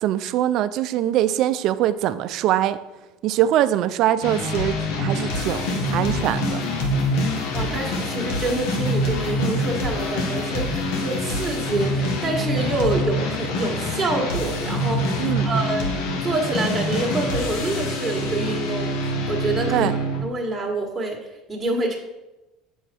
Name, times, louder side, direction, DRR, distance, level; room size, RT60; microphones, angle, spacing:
voice 1, 0.0-2.8 3.2-6.6 15.2-15.5 19.7-20.0, right 12 dB, 60° right, 13 dB, 0.5 m, -22 dB
sound 1, 4.2-20.2, left 1 dB, 75° left, 1.4 m, -25 dB
voice 2, 7.5-15.9 16.2-21.2 21.5-22.0, right 2 dB, 15° right, -3 dB, 1.6 m, -27 dB
8.1 x 6.3 x 4.5 m, 1.0 s
supercardioid pair, 105°, 0 cm